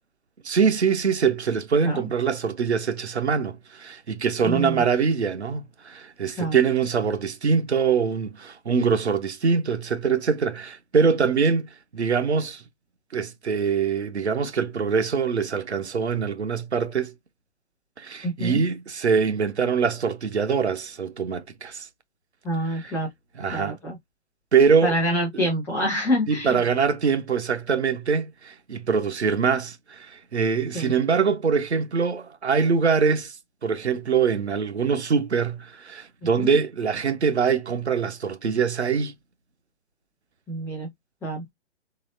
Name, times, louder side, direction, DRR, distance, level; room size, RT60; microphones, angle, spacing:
voice 1, 0.4-12.6 13.1-17.1 18.0-21.9 22.6-23.0 23.4-23.8 24.5-24.9 25.3-25.5 26.3-33.4 33.6-39.1, right 6 dB, 70° right, 0.7 m, -23 dB
voice 2, 4.4-4.8 6.4-6.5 18.2-18.6 22.4-23.1 23.5-24.0 24.8-26.6 30.7-30.9 36.4-36.5 40.5-40.9 41.2-41.4, equal, ahead, 0.4 m, -26 dB
4.0 x 3.1 x 2.5 m
figure-of-eight pair, 130°, 34 cm